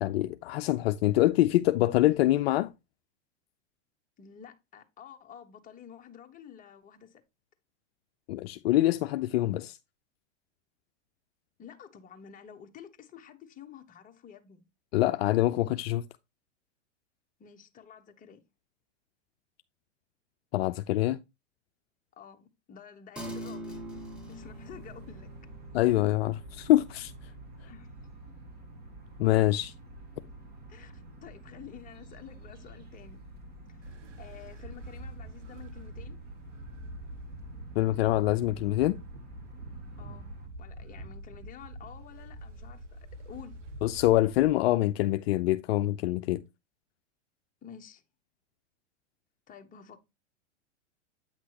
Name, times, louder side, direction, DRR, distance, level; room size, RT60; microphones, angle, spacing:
voice 1, 0.0-2.7 8.3-9.8 14.9-16.0 20.5-21.2 25.7-27.1 29.2-29.7 37.8-39.0 43.8-46.4, left 15 dB, 60° left, 0.5 m, -25 dB
voice 2, 4.2-7.2 11.6-14.6 17.4-18.4 22.2-24.0 24.3-25.3 27.6-27.9 30.7-33.2 33.7-36.2 40.0-43.0 43.2-43.6 47.6-48.0 49.5-50.0, left 8 dB, 20° left, 1.1 m, -50 dB
sound 1, 23.2-32.9, equal, 5° right, 1.7 m, -47 dB
sound 2, 23.7-40.5, right 1 dB, 25° right, 2.1 m, -49 dB
sound 3, 33.8-44.5, right 1 dB, 80° right, 1.6 m, -45 dB
8.6 x 6.0 x 2.9 m
hypercardioid pair, 115°, 36 cm